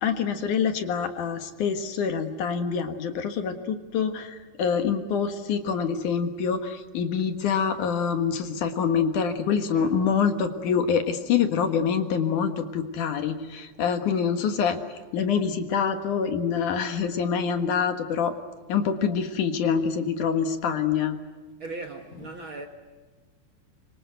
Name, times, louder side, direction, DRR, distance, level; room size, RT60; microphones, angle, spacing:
voice 1, 0.0-14.8 15.1-18.3 18.7-21.2, left 6 dB, 65° left, 2.9 m, -26 dB
voice 2, 21.6-22.7, right 3 dB, 45° right, 1.9 m, -38 dB
25.5 x 25.0 x 8.0 m
omnidirectional pair, 4.0 m